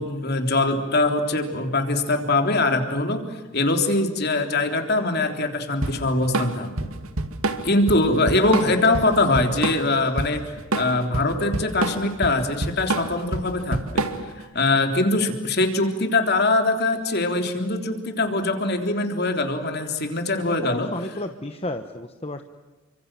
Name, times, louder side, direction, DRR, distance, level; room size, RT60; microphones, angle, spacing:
voice 1, 0.0-6.7 7.6-10.4 10.7-14.0 14.5-20.9, left 2 dB, 50° left, 5 dB, 3.6 m, -22 dB
Drum kit / Drum, 5.8-14.4, right 2 dB, 90° right, 2.3 m, -27 dB
voice 2, 20.4-22.4, left 1 dB, 30° left, 7 dB, 1.2 m, -32 dB
29.5 x 25.5 x 7.6 m, 1.2 s
head